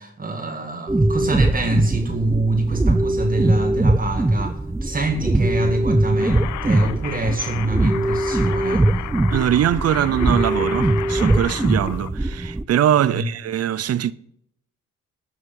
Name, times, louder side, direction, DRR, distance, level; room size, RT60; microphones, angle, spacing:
voice 1, 0.0-8.9 13.0-13.3, right 2 dB, 30° right, 1.8 m, -25 dB
sound 1, 0.9-12.6, right 2 dB, 10° right, 0.5 m, -21 dB
sound 2, 6.2-12.1, left 14 dB, 70° left, 0.6 m, -34 dB
voice 2, 9.3-14.1, right 10 dB, 55° right, 0.7 m, -21 dB
13.5 x 6.2 x 7.1 m
cardioid pair, 90°, 30 cm